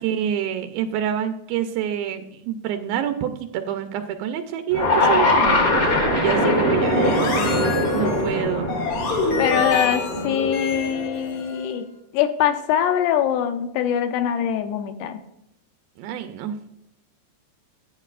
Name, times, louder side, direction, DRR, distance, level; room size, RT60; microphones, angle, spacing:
voice 1, 0.0-7.5 7.9-8.7 16.0-16.6, right 9 dB, 90° right, 7 dB, 2.1 m, -27 dB
sound 1, 4.7-11.0, left 1 dB, 40° left, 1.8 m, -22 dB
sound 2, 6.8-11.7, left 4 dB, 55° left, 3.2 m, -27 dB
voice 2, 9.4-11.9 12.1-15.2, left 9 dB, 80° left, 7 dB, 2.6 m, -23 dB
12.0 x 8.9 x 2.5 m, 0.79 s
omnidirectional pair, 5.0 m